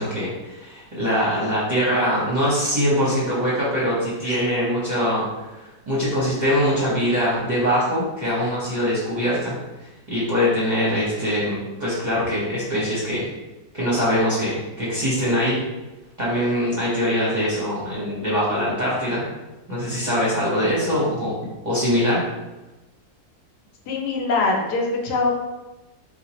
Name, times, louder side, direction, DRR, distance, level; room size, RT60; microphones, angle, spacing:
voice 1, 0.0-9.5 10.1-13.3 13.7-15.6 16.2-19.2 19.7-21.3 21.6-22.2, equal, 35° right, -8 dB, 0.7 m, -23 dB
voice 2, 23.9-25.3, left 3 dB, 80° left, 0 dB, 1.2 m, -22 dB
3.8 x 2.4 x 2.8 m, 1.1 s
omnidirectional pair, 1.7 m